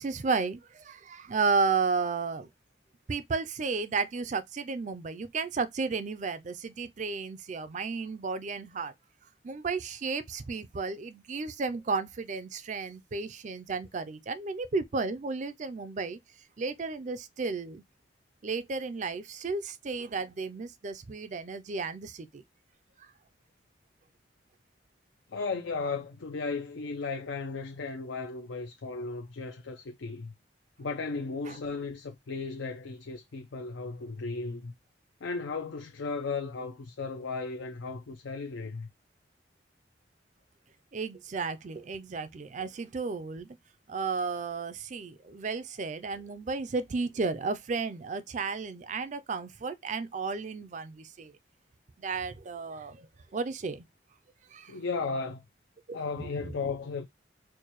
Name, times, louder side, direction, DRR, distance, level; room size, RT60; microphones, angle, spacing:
voice 1, 0.0-2.5 3.1-8.9 9.4-16.2 16.6-17.8 18.4-22.4 31.5-31.6 40.9-43.5 43.9-51.3 52.0-53.1 53.3-53.8 54.5-54.7 55.9-56.5, right 4 dB, 40° right, 0.4 m, -33 dB
voice 2, 25.3-30.3 30.8-34.7 35.2-38.9 54.7-55.4 55.9-57.0, left 4 dB, 80° left, 0.5 m, -35 dB
4.5 x 2.2 x 3.0 m
head